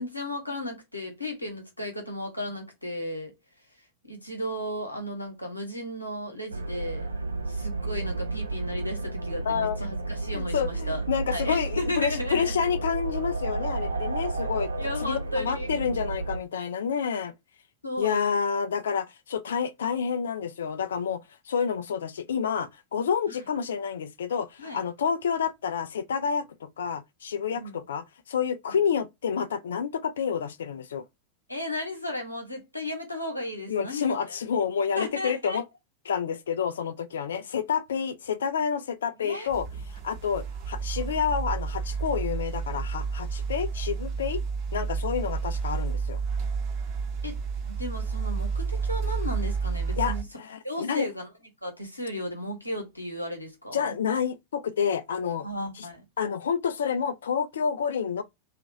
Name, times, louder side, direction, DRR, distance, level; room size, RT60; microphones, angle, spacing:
voice 1, 0.0-3.3 4.1-7.1 7.5-11.0 11.3-12.5 14.8-15.7 17.8-18.4 23.3-23.4 24.6-24.8 27.5-27.8 31.5-34.1 34.9-35.6 39.2-39.5 47.2-50.2 50.6-51.3 51.6-54.0 55.4-56.0, left 1 dB, 85° left, 1.0 m, -34 dB
sound 1, 6.5-16.4, right 3 dB, 80° right, 0.4 m, -32 dB
voice 2, 9.5-9.8 10.3-14.7 15.0-17.3 18.0-21.2 21.5-31.0 33.7-35.6 36.1-39.7 40.0-44.4 44.7-46.2 50.0-51.1 53.7-55.5 55.8-55.9 56.2-58.2, left 7 dB, 65° left, 0.3 m, -29 dB
sound 2, 39.5-50.2, right 5 dB, 40° right, 0.8 m, -30 dB
2.9 x 2.4 x 3.7 m
figure-of-eight pair, 90°, 0 cm